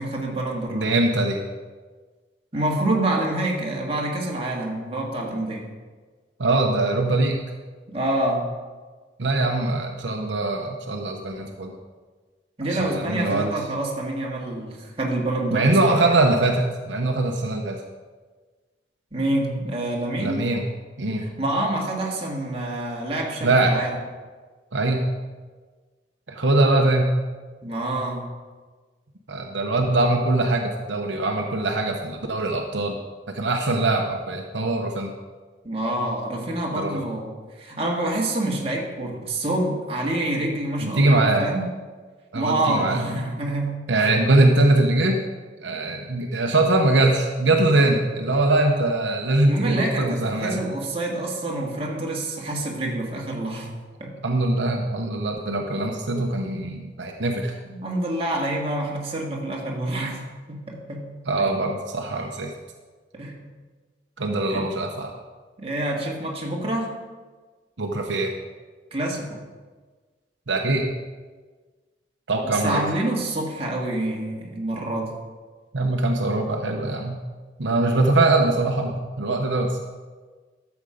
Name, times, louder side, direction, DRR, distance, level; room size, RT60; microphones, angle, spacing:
voice 1, 0.0-0.9 2.5-5.7 7.9-8.5 12.6-15.8 19.1-20.4 21.2-24.0 27.6-28.3 35.6-41.7 42.3-43.8 49.5-53.7 54.0-54.2 57.7-60.2 60.5-61.1 61.4-61.6 63.1-63.4 64.5-64.7 65.6-66.9 68.9-69.4 72.5-75.1, right 1 dB, 30° right, -2 dB, 1.9 m, -27 dB
voice 2, 0.7-1.4 6.4-7.4 9.2-11.7 12.6-13.5 15.5-17.8 20.2-20.6 21.0-21.3 23.4-23.8 24.7-25.0 26.3-27.1 29.3-33.0 33.3-35.1 36.7-37.0 40.8-41.5 42.3-43.0 43.9-45.2 45.6-50.6 54.2-57.5 61.3-62.5 64.2-65.1 67.8-68.3 70.5-70.9 72.3-72.8 75.7-77.2 77.6-79.8, right 2 dB, 75° right, 2 dB, 1.0 m, -22 dB
12.5 x 7.2 x 5.1 m, 1.4 s
head